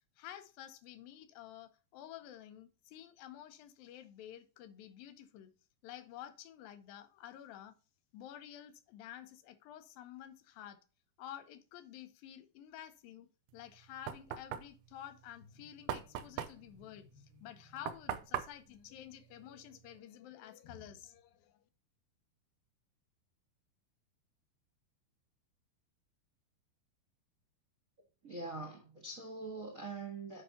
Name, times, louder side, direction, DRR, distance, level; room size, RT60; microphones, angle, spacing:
voice 1, 0.2-5.5 5.8-7.7 8.1-10.8 11.2-13.3 13.5-21.6, left 11 dB, 80° left, 2.6 m, -51 dB
Knock, 13.5-20.0, right 10 dB, 90° right, 1.7 m, -43 dB
voice 2, 28.2-30.4, right 3 dB, 45° right, 1.1 m, -43 dB
9.9 x 5.4 x 2.7 m
omnidirectional pair, 4.1 m